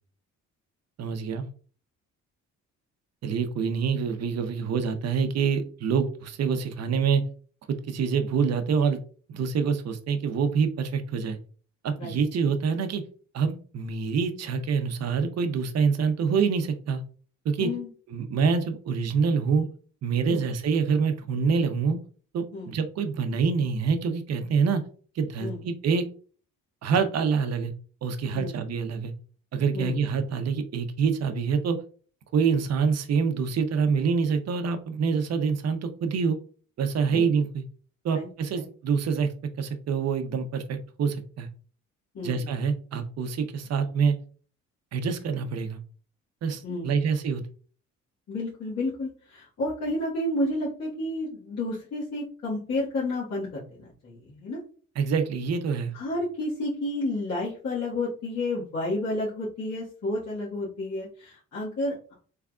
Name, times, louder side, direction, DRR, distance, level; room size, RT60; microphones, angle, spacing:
voice 1, 1.0-1.5 3.2-7.2 7.7-9.0 9.3-11.4 11.8-13.0 13.3-17.0 17.4-17.7 18.1-19.7 20.0-22.0 22.3-24.8 25.1-26.1 26.8-27.7 28.0-29.1 29.5-31.8 32.3-36.4 36.8-37.6 38.0-39.3 39.6-41.5 42.2-44.2 44.9-45.8 46.4-47.4 55.0-55.9, right 5 dB, 55° right, 9 dB, 0.7 m, -26 dB
voice 2, 42.1-42.5 46.6-46.9 48.3-54.6 55.9-62.1, left 2 dB, 55° left, -9 dB, 1.6 m, -31 dB
3.6 x 3.3 x 2.3 m, 0.42 s
cardioid pair, 90°, 30 cm